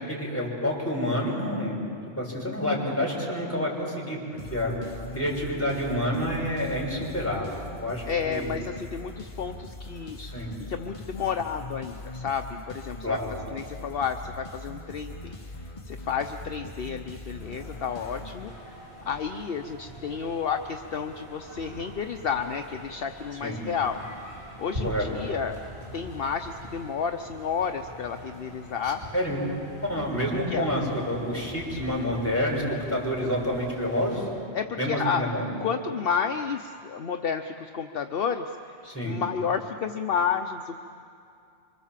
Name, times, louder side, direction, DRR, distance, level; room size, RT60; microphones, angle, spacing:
voice 1, 0.1-1.9 2.2-4.2 4.5-4.7 5.1-7.5 7.8-8.5 10.2-10.5 13.0-13.3 23.4-23.6 24.8-25.1 28.8-29.4 29.8-34.2 34.8-35.4 38.9-39.2, equal, 10° left, -3 dB, 6.0 m, -28 dB
sound 1, 4.4-19.0, left 2 dB, 30° left, 1.1 m, -41 dB
voice 2, 8.1-10.2 10.7-13.2 13.5-24.0 24.6-25.6 25.9-29.0 30.5-30.6 34.5-35.3 35.6-38.8 39.0-40.8, left 6 dB, 60° left, 6 dB, 1.0 m, -31 dB
sound 2, 17.4-34.3, equal, 70° right, 7.3 m, -43 dB
26.5 x 25.0 x 7.5 m, 2.5 s
omnidirectional pair, 1.1 m